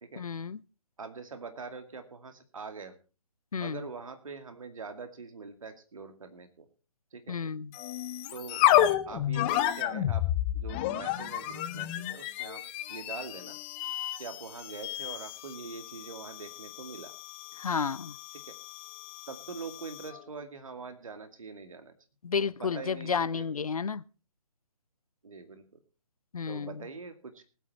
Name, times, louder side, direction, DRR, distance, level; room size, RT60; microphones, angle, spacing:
voice 1, 0.2-0.6 3.5-3.9 7.3-7.7 17.6-18.2 22.2-24.0 26.3-26.9, left 6 dB, 70° left, 0.7 m, -32 dB
voice 2, 1.0-3.0 3.6-6.7 7.1-7.4 8.3-8.6 9.1-10.2 10.5-12.6 12.9-13.6 14.2-17.1 18.5-18.6 19.3-21.9 22.6-23.5 25.2-25.6 26.5-27.4, right 4 dB, 60° right, 2.3 m, -43 dB
sound 1, 7.7-20.2, left 12 dB, 15° left, 0.6 m, -31 dB
19.0 x 8.5 x 4.2 m
figure-of-eight pair, 140°, 19 cm